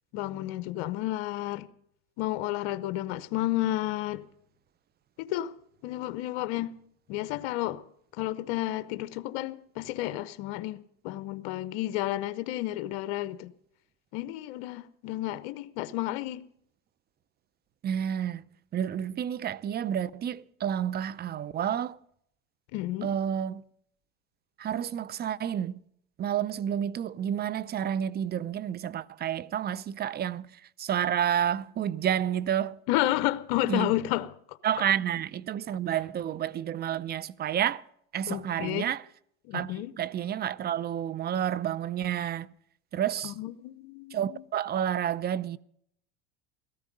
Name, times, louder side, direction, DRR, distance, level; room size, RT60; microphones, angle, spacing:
voice 1, 0.1-1.7 2.2-4.2 5.2-5.5 5.8-6.8 7.1-7.8 8.1-13.5 14.1-16.4 22.7-23.1 32.9-34.6 38.3-38.9 39.4-39.9 43.2-44.4, left 15 dB, 70° left, 0.9 m, -31 dB
voice 2, 17.8-18.4 18.7-22.0 23.0-23.6 24.6-25.8 26.2-32.8 33.7-33.9 34.6-37.8 38.1-39.0 39.5-42.5 42.9-43.3 44.1-45.6, right 9 dB, 30° right, 0.6 m, -30 dB
17.5 x 14.0 x 5.3 m
supercardioid pair, 115°, 34 cm